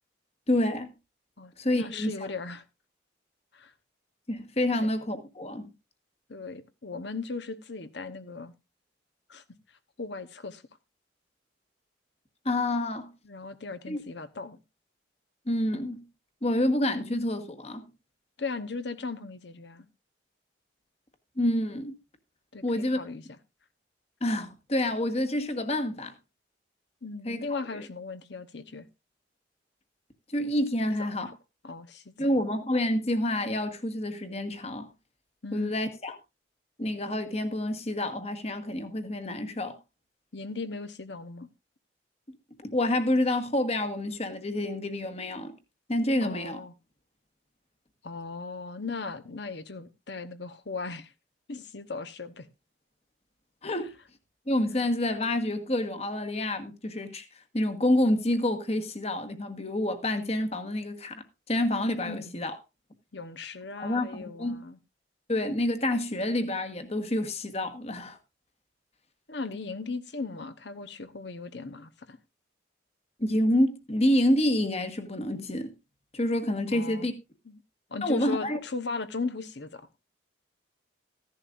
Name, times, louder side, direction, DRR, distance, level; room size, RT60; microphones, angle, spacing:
voice 1, 0.5-0.9 1.6-2.1 4.3-5.7 12.4-13.1 13.9-14.0 15.5-16.0 16.4-17.9 21.4-22.0 22.6-23.0 24.2-26.1 27.2-27.8 30.3-31.3 32.2-34.9 35.5-36.1 36.8-39.8 42.6-45.5 45.9-46.6 53.6-53.9 54.5-57.2 57.5-62.6 63.8-64.6 65.3-68.2 73.2-75.7 76.1-77.1 78.0-78.6, left 1 dB, 35° left, 1.4 m, -28 dB
voice 2, 1.4-2.6 3.5-3.7 4.7-4.9 6.3-8.5 9.3-9.4 10.0-10.6 13.2-14.6 18.4-19.9 22.5-23.2 27.0-28.9 31.0-31.1 31.6-32.3 35.4-35.7 40.3-41.5 46.2-46.7 48.0-51.1 51.5-52.5 62.0-62.3 63.1-64.8 69.3-72.2 76.7-77.1 77.5-77.6 77.9-79.9, left 4 dB, 65° left, 1.0 m, -37 dB
15.0 x 10.5 x 2.5 m
head